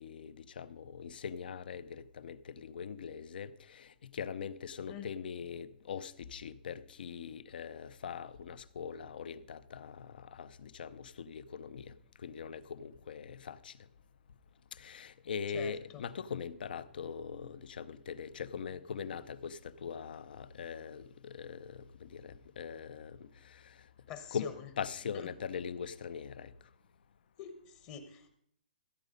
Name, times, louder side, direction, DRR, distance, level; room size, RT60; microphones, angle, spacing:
voice 1, 0.0-13.8 14.7-23.8 24.3-26.5, left 7 dB, 65° left, 0.7 m, -42 dB
voice 2, 15.5-16.0 24.1-24.5 27.4-28.4, left 9 dB, 25° left, 0.9 m, -46 dB
15.0 x 8.2 x 5.2 m
hypercardioid pair, 155°, 5 cm